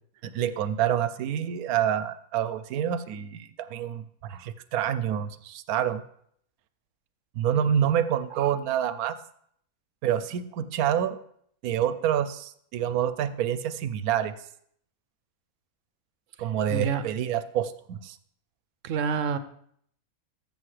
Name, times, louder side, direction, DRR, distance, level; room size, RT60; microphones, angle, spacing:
voice 1, 0.2-6.0 7.4-9.2 10.0-11.2 11.6-14.3 16.4-18.2, right 9 dB, 90° right, 13 dB, 1.1 m, -27 dB
voice 2, 16.7-17.0 18.8-19.4, right 6 dB, 65° right, 12 dB, 0.9 m, -28 dB
13.5 x 6.9 x 3.2 m, 0.67 s
omnidirectional pair, 1.5 m